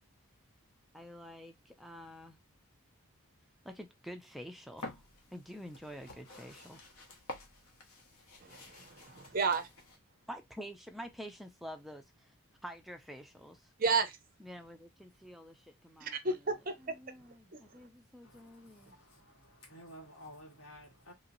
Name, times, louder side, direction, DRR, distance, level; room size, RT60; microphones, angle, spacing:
voice 1, 0.9-2.4 3.6-5.0 5.3-6.8 10.3-12.3 12.6-13.7 14.4-16.5 16.8-19.0, equal, ahead, 0.3 m, -48 dB
sound 1, 4.8-10.0, left 2 dB, 90° left, 0.9 m, -50 dB
voice 2, 8.4-9.7 13.8-14.2 16.0-16.9 17.5-17.6, right 4 dB, 40° right, 0.6 m, -32 dB
voice 3, 18.2-21.1, equal, 70° left, 1.7 m, -53 dB
2.9 x 2.7 x 2.6 m
head